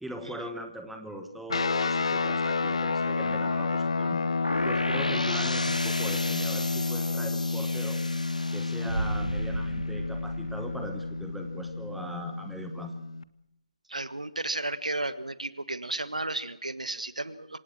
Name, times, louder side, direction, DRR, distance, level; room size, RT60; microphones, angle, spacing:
voice 1, 0.0-4.2 4.6-8.0 8.5-13.0, right 1 dB, ahead, 5 dB, 1.1 m, -40 dB
sound 1, 1.5-13.2, left 4 dB, 50° left, 0.7 m, -30 dB
sound 2, 4.4-10.3, left 1 dB, 85° left, 1.0 m, -35 dB
sound 3, 8.8-11.8, right 3 dB, 60° right, 2.5 m, -35 dB
voice 2, 13.9-17.6, right 2 dB, 75° right, 14 dB, 1.3 m, -33 dB
26.0 x 17.0 x 6.2 m, 0.81 s
figure-of-eight pair, 150°, 4 cm